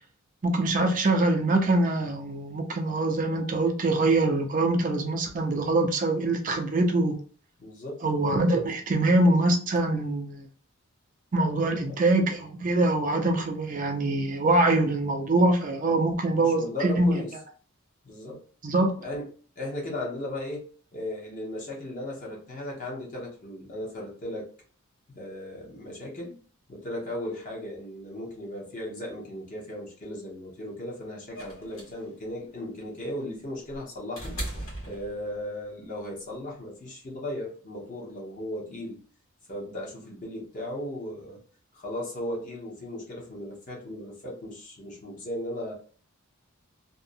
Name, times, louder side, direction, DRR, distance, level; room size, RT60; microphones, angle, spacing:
voice 1, 0.4-7.2 8.0-10.5 11.3-17.2 18.6-18.9, right 2 dB, 35° right, 0.4 m, -24 dB
voice 2, 7.6-8.0 8.6-8.7 11.9-12.0 16.4-17.3 18.0-18.4 19.0-19.3 19.6-20.6 20.9-24.4 25.1-26.3 26.7-34.4 34.8-39.0 39.5-41.4 41.7-45.7, left 1 dB, 35° left, 0.8 m, -36 dB
sound 1, 31.3-35.6 36.9-37.0, right 1 dB, 75° left, 1.2 m, -39 dB
2.6 x 2.0 x 2.5 m
head